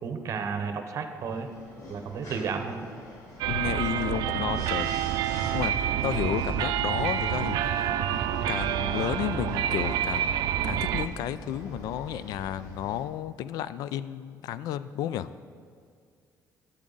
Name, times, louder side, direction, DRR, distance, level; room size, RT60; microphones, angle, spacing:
voice 1, 0.0-1.5 1.9-2.9, right 5 dB, 50° right, 7 dB, 0.9 m, -32 dB
sound 1, 1.1-13.0, left 1 dB, 55° left, 1.9 m, -47 dB
sound 2, 3.4-11.1, right 10 dB, 80° right, 0.4 m, -28 dB
voice 2, 3.5-4.9 5.5-7.9 8.5-10.4 10.6-15.3, left 10 dB, 75° left, 15 dB, 0.3 m, -32 dB
12.0 x 7.5 x 3.9 m, 2.1 s
cardioid pair, 130°, 7 cm